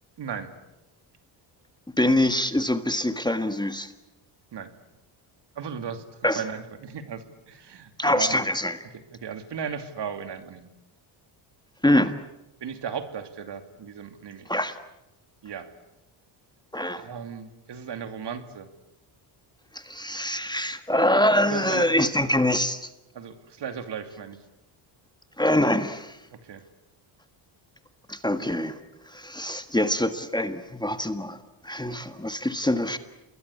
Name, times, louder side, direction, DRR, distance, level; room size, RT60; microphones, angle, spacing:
voice 1, 0.2-0.5 4.5-4.7 5.5-6.0 6.3-8.4 8.8-10.7 12.6-14.5 15.4-15.7 16.9-18.7 21.4-21.9 22.2-22.3 23.1-24.4 26.3-26.6 28.4-28.5, right 7 dB, 55° right, 9 dB, 2.6 m, -36 dB
voice 2, 2.0-3.9 6.2-6.4 8.0-8.8 11.8-12.1 14.5-14.7 16.7-17.0 19.7-22.9 25.4-26.2 28.1-28.8 29.1-31.4 31.6-33.0, left 1 dB, 10° left, 9 dB, 1.6 m, -24 dB
28.0 x 21.0 x 8.5 m, 0.94 s
cardioid pair, 85°, 48 cm